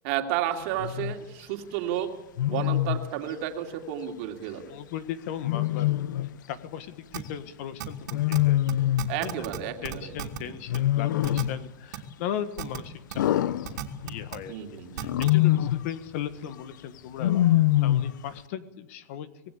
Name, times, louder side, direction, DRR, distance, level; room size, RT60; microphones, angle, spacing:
voice 1, 0.0-2.1 2.4-4.7 9.1-10.1 10.4-10.6 14.5-15.2, right 11 dB, 40° right, 4 dB, 3.0 m, -32 dB
Wild animals, 0.8-1.2 2.4-3.1 5.4-6.3 8.1-9.2 10.7-11.6 13.2-14.3 15.0-15.9 17.2-18.2, left 14 dB, 75° left, 0.8 m, -24 dB
voice 2, 4.7-8.9 9.2-9.5 9.8-13.7 14.0-14.6 14.9-19.3, left 9 dB, 45° left, 13 dB, 1.5 m, -37 dB
sound 1, 7.1-7.2 7.8-8.4 8.7-8.8 9.0-9.6 9.8-10.4 10.7-10.8 11.2-11.4 11.9-12.0 12.6-12.8 13.1-13.2 13.6-14.4 15.0-15.3, right 12 dB, 65° right, 3.0 m, -34 dB
25.5 x 18.5 x 8.4 m, 0.92 s
supercardioid pair, 170°, 10 cm